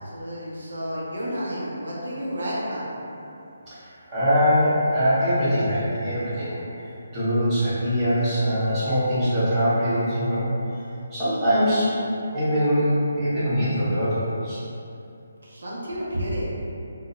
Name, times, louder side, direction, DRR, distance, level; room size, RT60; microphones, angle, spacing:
voice 1, 0.0-2.9 15.4-16.5, equal, 70° right, -6 dB, 0.7 m, -31 dB
voice 2, 4.1-6.6 7.1-10.4 11.1-11.9 12.3-14.6, equal, 15° right, -14 dB, 0.9 m, -22 dB
2.3 x 2.1 x 2.9 m, 2.7 s
figure-of-eight pair, 150°, 0 cm